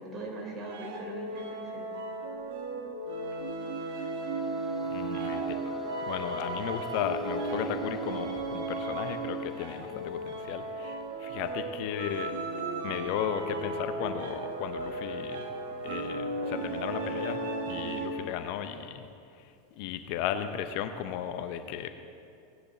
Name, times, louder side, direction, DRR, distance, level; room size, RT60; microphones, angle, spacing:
voice 1, 0.0-1.9 9.9-10.0 17.7-17.9, right 2 dB, 30° right, 0 dB, 3.6 m, -41 dB
sound 1, 0.6-18.4, right 2 dB, 70° right, 1.4 m, -35 dB
sound 2, 3.1-11.7, left 5 dB, 5° left, 1.6 m, -46 dB
voice 2, 4.9-5.7 6.0-12.3 12.8-15.5 15.8-17.4 17.7-19.1 19.4-21.9, left 9 dB, 55° left, 9 dB, 0.7 m, -35 dB
17.5 x 9.9 x 3.9 m, 2.5 s
hypercardioid pair, 90°, 0 cm